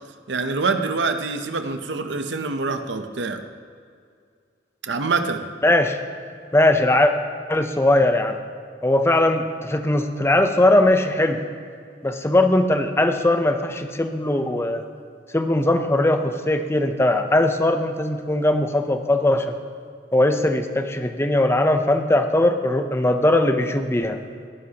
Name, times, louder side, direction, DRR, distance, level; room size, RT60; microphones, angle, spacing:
voice 1, 0.3-3.4 4.8-5.5, right 4 dB, 90° right, 8 dB, 0.8 m, -25 dB
voice 2, 5.6-6.0 6.5-7.1 7.5-8.4 8.8-11.4 12.0-14.8 15.3-19.5 20.1-24.2, left 1 dB, 15° left, 7 dB, 0.6 m, -20 dB
17.5 x 9.7 x 2.9 m, 2.2 s
head